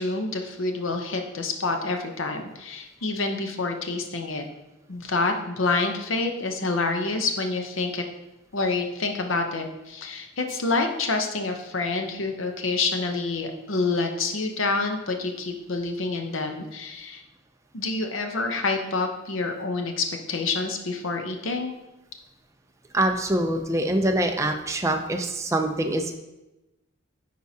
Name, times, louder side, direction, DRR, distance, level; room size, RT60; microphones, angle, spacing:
voice 1, 0.0-4.4 4.9-8.0 8.5-17.2 17.7-21.7, left 3 dB, 75° left, 5 dB, 0.8 m, -27 dB
voice 2, 22.9-26.1, right 1 dB, 15° right, 4 dB, 0.4 m, -24 dB
9.1 x 4.6 x 2.8 m, 0.99 s
head